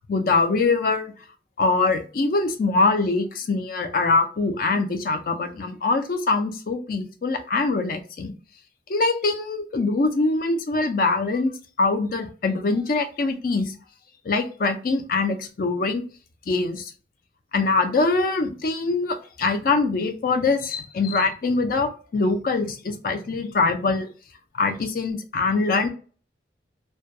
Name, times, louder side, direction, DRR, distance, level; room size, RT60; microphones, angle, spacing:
voice 1, 0.1-1.1 1.6-8.3 8.9-11.5 11.8-13.7 14.3-16.0 16.5-16.9 17.5-24.1 24.5-25.9, left 3 dB, 55° left, 0.4 m, -23 dB
2.2 x 2.2 x 2.6 m
head